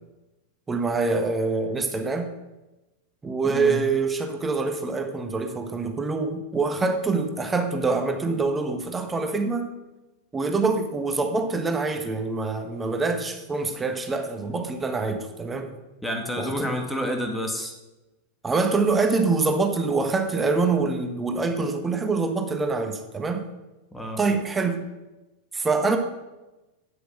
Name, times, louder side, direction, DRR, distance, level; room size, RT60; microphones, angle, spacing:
voice 1, 0.7-2.3 3.2-9.7 10.3-15.7 16.4-16.7 18.4-23.5 24.2-24.9 25.5-26.0, right 3 dB, 15° right, 6 dB, 1.3 m, -25 dB
voice 2, 3.4-3.8 16.0-17.7 23.9-24.2, left 1 dB, 5° left, 2 dB, 2.0 m, -29 dB
9.0 x 8.1 x 6.3 m, 1.0 s
figure-of-eight pair, 90°, 0 cm